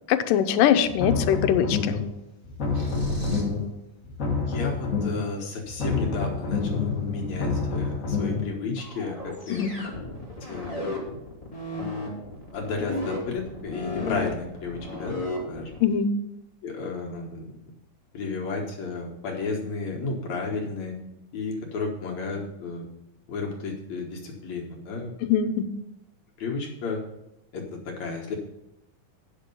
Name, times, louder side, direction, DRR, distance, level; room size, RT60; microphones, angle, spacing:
voice 1, 0.1-2.0 9.5-9.7 15.8-16.1 25.2-25.7, left 9 dB, 85° left, 9 dB, 2.3 m, -22 dB
sound 1, 0.8-2.1 2.4-3.7 4.0-5.3 5.6-8.5, left 4 dB, 40° left, 1.2 m, -28 dB
sound 2, 2.7-3.6, right 1 dB, 30° right, 1.0 m, -31 dB
voice 2, 4.5-9.6 10.4-10.7 12.5-15.7 16.6-17.5 18.1-21.0 21.3-22.9 23.3-25.1 26.4-27.0 27.5-28.4, left 4 dB, 60° left, -1 dB, 2.5 m, -33 dB
sound 3, 8.8-15.8, left 2 dB, 15° left, 1.8 m, -33 dB
9.5 x 6.6 x 5.4 m, 0.89 s
omnidirectional pair, 3.8 m